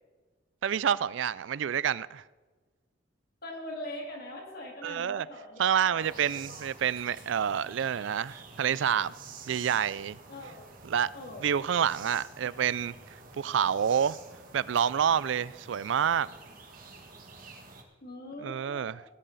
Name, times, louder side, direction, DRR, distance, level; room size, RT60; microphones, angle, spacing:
voice 1, 0.6-2.2 4.8-5.3 5.6-9.1 9.5-10.2 10.8-11.1 11.4-14.2 14.5-16.3 18.4-19.0, right 8 dB, 75° right, 0.4 m, -28 dB
voice 2, 3.4-6.6 10.3-10.7 11.1-11.5 18.0-19.1, left 1 dB, 55° left, 2.5 m, -42 dB
sound 1, 6.0-17.8, right 4 dB, 45° right, 1.6 m, -49 dB
18.0 x 10.0 x 4.0 m
head